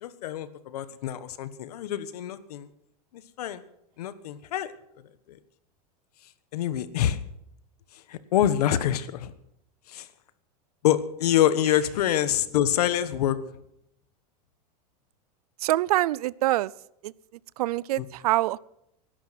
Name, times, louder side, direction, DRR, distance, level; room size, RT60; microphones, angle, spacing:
voice 1, 0.0-2.7 3.1-3.6 4.0-4.7 5.3-5.4 6.5-7.2 7.9-9.3 9.9-10.1 10.8-13.4 18.0-18.1, left 11 dB, 80° left, 14 dB, 1.3 m, -26 dB
voice 2, 15.6-16.7 17.0-17.1 17.6-18.6, right 16 dB, 80° right, 23 dB, 0.5 m, -25 dB
20.0 x 11.5 x 5.9 m, 0.80 s
supercardioid pair, 150°, 19 cm